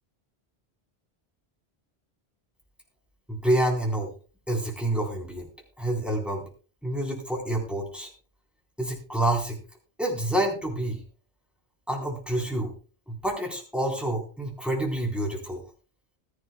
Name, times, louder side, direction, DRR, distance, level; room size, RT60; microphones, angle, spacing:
voice 1, 3.3-4.1 4.5-5.5 5.8-6.4 6.8-8.1 8.8-9.6 10.0-11.0 11.9-12.7 13.1-15.6, right 1 dB, ahead, 0 dB, 3.9 m, -28 dB
20.0 x 11.5 x 2.3 m, 0.36 s
omnidirectional pair, 1.1 m